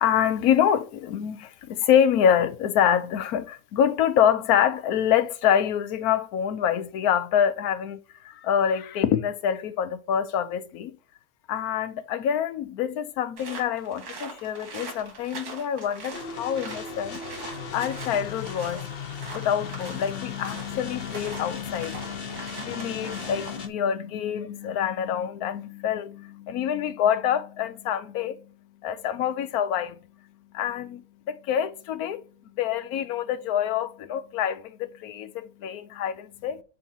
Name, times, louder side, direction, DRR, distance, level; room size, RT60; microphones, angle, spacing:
voice 1, 0.0-11.0 11.5-18.9 19.3-28.5 28.8-29.9 30.5-32.2 32.5-36.6, left 9 dB, 75° left, 1.2 m, -26 dB
sound 1, 13.4-23.7, right 3 dB, 85° right, 2.4 m, -42 dB
sound 2, 16.1-23.7, left 6 dB, 50° left, 0.8 m, -37 dB
8.1 x 2.8 x 5.5 m
omnidirectional pair, 1.6 m